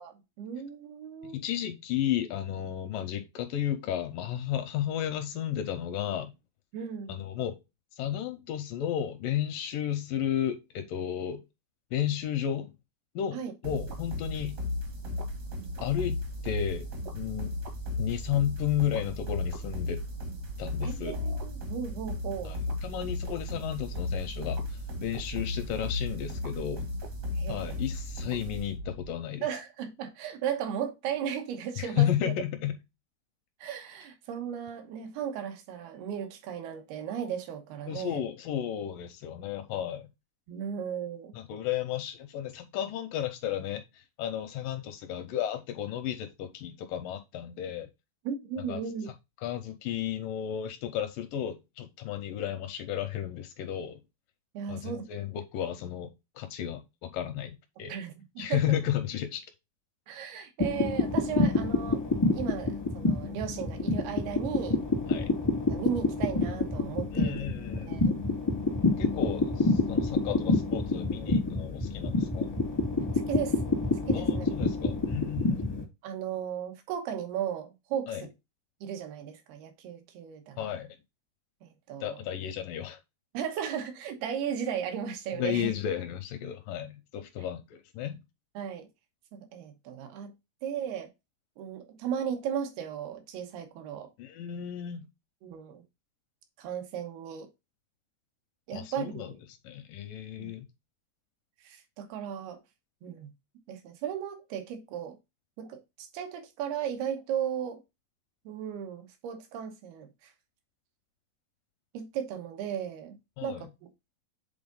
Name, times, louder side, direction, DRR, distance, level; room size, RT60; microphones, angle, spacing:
voice 1, 0.0-1.4 6.7-7.1 13.3-13.5 20.8-22.6 27.4-27.8 29.4-32.1 33.6-38.2 40.5-41.4 48.2-49.1 54.5-55.0 57.9-58.6 60.1-62.0 62.3-64.8 65.7-67.5 67.9-68.2 73.3-73.6 74.1-74.5 76.0-78.3 78.8-80.7 81.6-82.2 83.3-85.7 88.5-88.9 89.3-90.3 90.6-91.1 91.6-94.1 95.4-95.8 96.6-97.5 98.7-99.4 100.4-100.5 101.6-102.6 103.0-103.3 103.7-105.2 105.6-107.8 108.5-110.3 111.9-113.9, right 8 dB, 90° right, 3.1 m, -36 dB
voice 2, 1.2-6.3 7.1-7.6 7.9-11.4 11.9-12.7 13.2-14.6 15.8-16.9 17.1-17.5 18.0-20.0 20.6-21.2 22.4-26.9 27.5-29.5 31.8-32.7 37.9-40.1 41.3-47.9 48.6-48.8 49.4-54.0 54.7-57.9 58.4-59.4 65.1-65.3 67.1-68.0 69.0-72.6 74.1-75.8 78.1-78.2 80.6-81.0 82.0-83.0 85.4-88.2 94.2-95.1 98.7-99.3 99.6-100.7 113.4-113.7, left 10 dB, 80° left, 2.1 m, -33 dB
sound 1, 13.6-29.1, left 2 dB, 60° right, 1.0 m, -35 dB
sound 2, 60.6-75.8, left 3 dB, 20° left, 0.5 m, -28 dB
7.8 x 3.7 x 3.8 m
omnidirectional pair, 4.3 m